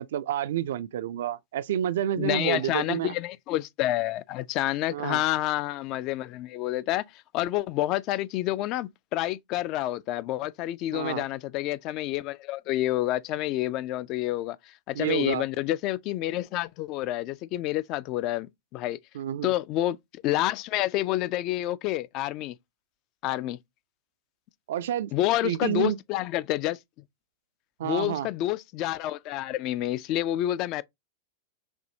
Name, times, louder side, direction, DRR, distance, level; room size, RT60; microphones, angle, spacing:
voice 1, 0.0-3.1 4.9-5.2 10.9-11.2 14.9-15.4 19.1-19.5 24.7-25.1 25.4-26.0 27.8-28.3, right 11 dB, 60° right, 0.3 m, -29 dB
voice 2, 2.2-18.5 18.7-19.0 19.4-22.6 23.2-23.6 25.1-26.8 27.8-30.8, left 15 dB, 40° left, 0.3 m, -28 dB
6.0 x 2.6 x 2.7 m
figure-of-eight pair, 90°, 0 cm